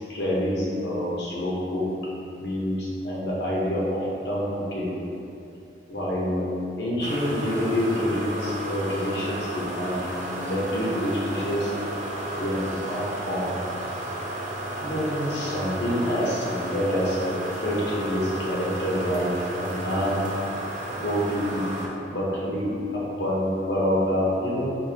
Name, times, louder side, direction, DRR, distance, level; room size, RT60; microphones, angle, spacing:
voice 1, 0.1-1.9 2.4-5.0 5.9-6.5 6.8-10.0 10.4-11.7 12.4-13.5 14.8-19.3 19.5-20.3 20.9-21.6 22.1-24.7, equal, 85° left, -6 dB, 1.0 m, -27 dB
sound 1, 7.0-21.9, right 1 dB, 45° right, 0.5 m, -33 dB
4.3 x 2.8 x 3.4 m, 2.7 s
head